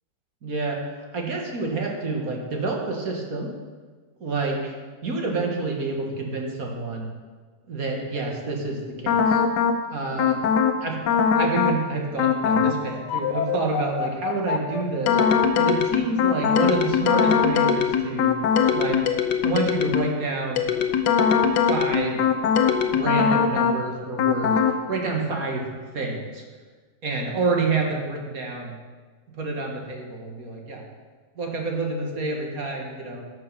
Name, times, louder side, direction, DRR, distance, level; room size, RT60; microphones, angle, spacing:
voice 1, 0.4-0.8 1.1-3.5 4.2-4.7 5.0-7.1 7.7-9.4 9.9-10.4 10.8-11.0 11.3-15.2 15.6-18.4 18.7-19.0 19.4-20.7 21.5-22.2 22.8-24.6 24.9-25.7 25.9-26.4 27.0-28.8 29.4-30.8 31.4-33.2, right 3 dB, 55° right, 0 dB, 2.0 m, -28 dB
sound 1, 9.1-9.8 10.2-10.8 11.1-11.8 12.2-12.8 13.1-20.2 20.6-23.8 24.2-24.8, left 7 dB, 70° left, 1.4 m, -21 dB
12.5 x 6.6 x 5.6 m, 1.5 s
omnidirectional pair, 1.9 m